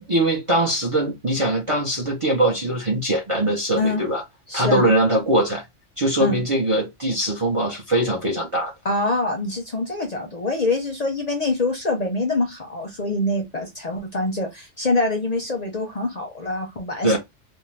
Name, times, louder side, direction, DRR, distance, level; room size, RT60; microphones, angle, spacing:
voice 1, 0.1-4.2 4.5-5.6 6.0-8.7 17.0-17.2, right 1 dB, 35° right, 0.6 m, -21 dB
voice 2, 4.5-4.9 6.2-6.4 8.8-17.2, left 2 dB, 45° left, 0.6 m, -25 dB
2.6 x 2.0 x 3.1 m
omnidirectional pair, 1.2 m